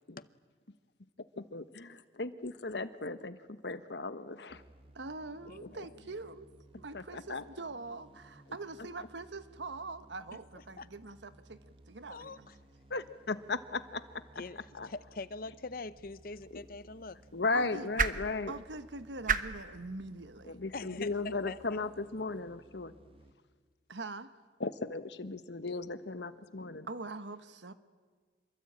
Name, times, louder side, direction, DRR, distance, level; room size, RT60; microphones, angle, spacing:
voice 1, 1.4-4.6 6.9-7.4 12.9-14.0 14.7-14.9 16.5-16.6 17.3-18.5 20.4-22.9 24.6-26.9, left 3 dB, 70° left, 12 dB, 1.2 m, -36 dB
sound 1, 4.5-23.3, right 1 dB, 30° right, 1.5 m, -59 dB
voice 2, 4.9-6.5 6.7-12.5 17.5-17.9 18.5-21.1 23.9-24.4 26.8-27.7, right 3 dB, 80° right, 11 dB, 1.3 m, -44 dB
voice 3, 5.5-5.9 10.8-10.9 12.1-12.4 14.4-14.6 14.8-17.2 20.7-21.6, left 3 dB, 50° left, 16 dB, 0.8 m, -43 dB
sound 2, 16.2-22.4, right 5 dB, 45° right, 1.1 m, -39 dB
27.5 x 23.0 x 8.8 m, 1.5 s
head